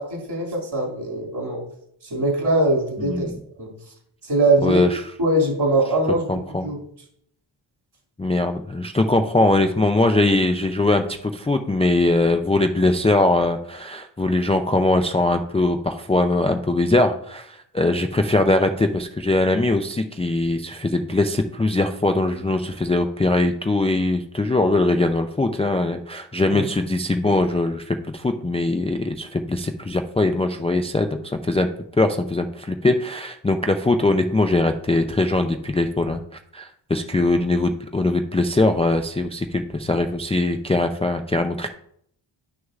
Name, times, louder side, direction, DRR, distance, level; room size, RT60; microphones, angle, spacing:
voice 1, 0.0-1.6 2.1-3.3 3.6-3.7 4.3-4.9 5.2-6.2 6.6-6.8 26.5-26.6, right 2 dB, 55° right, -1 dB, 2.5 m, -21 dB
voice 2, 3.0-3.4 4.6-5.1 6.3-6.7 8.2-31.7 32.0-36.2 36.5-41.7, left 2 dB, 15° left, 5 dB, 0.3 m, -21 dB
11.0 x 6.3 x 2.4 m, 0.69 s
wide cardioid pair, 125°, 48 cm